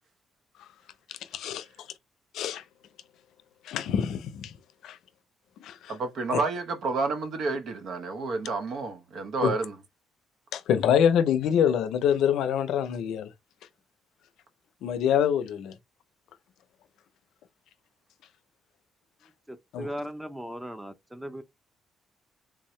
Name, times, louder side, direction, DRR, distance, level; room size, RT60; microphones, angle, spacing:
voice 1, 1.1-1.7 2.3-2.6 3.6-4.6 4.8-5.0 5.6-5.8 6.3-6.4 9.4-9.5 10.5-13.3 14.8-15.8 19.7-19.9, left 8 dB, 80° left, 0.5 m, -25 dB
voice 2, 5.9-9.8, right 3 dB, 70° right, 0.9 m, -30 dB
voice 3, 19.5-21.4, equal, 5° right, 0.6 m, -38 dB
3.6 x 2.7 x 3.1 m
cardioid pair, 90°, 0 cm